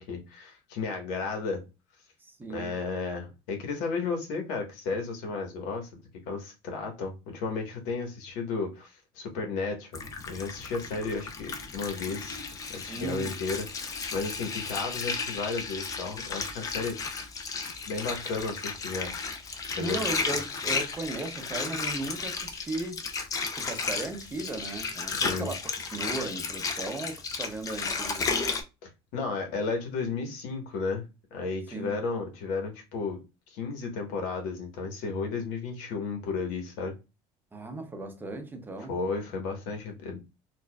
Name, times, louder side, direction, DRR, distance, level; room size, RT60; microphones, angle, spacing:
voice 1, 0.0-1.6 2.5-5.9 6.3-9.9 10.3-12.4 12.7-17.3 17.9-19.1 19.7-20.0 25.1-25.5 28.8-33.2 33.5-36.9 38.9-40.2, left 4 dB, 80° left, 1.3 m, -33 dB
voice 2, 2.2-2.7 12.9-13.4 19.7-23.0 23.6-25.6 25.9-28.3 31.7-32.0 37.5-39.0, right 2 dB, 15° right, 0.6 m, -36 dB
Water, 9.9-28.6, left 4 dB, 30° left, 0.6 m, -34 dB
4.4 x 2.5 x 2.2 m
cardioid pair, 140°, 12 cm